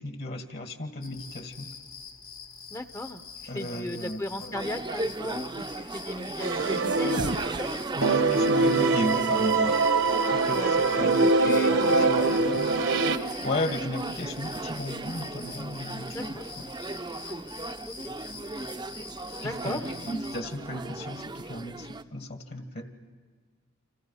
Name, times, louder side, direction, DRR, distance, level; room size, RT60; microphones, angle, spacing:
voice 1, 0.0-1.7 3.5-4.6 7.9-9.8 10.3-12.7 13.4-16.4 19.4-22.9, left 1 dB, 55° left, 6 dB, 1.9 m, -35 dB
sound 1, 1.0-20.4, left 6 dB, 80° left, 3.1 m, -45 dB
voice 2, 2.7-7.8 10.5-12.5 13.3-13.5 16.1-16.4 17.3-17.5 17.9-18.2 19.4-19.9, left 1 dB, 15° left, 9 dB, 0.8 m, -37 dB
sound 2, 4.5-22.0, right 3 dB, 20° right, 0.7 m, -37 dB
sound 3, 6.4-7.7 8.0-13.2, right 3 dB, 65° right, 1.1 m, -23 dB
29.5 x 26.5 x 5.7 m, 1.5 s
head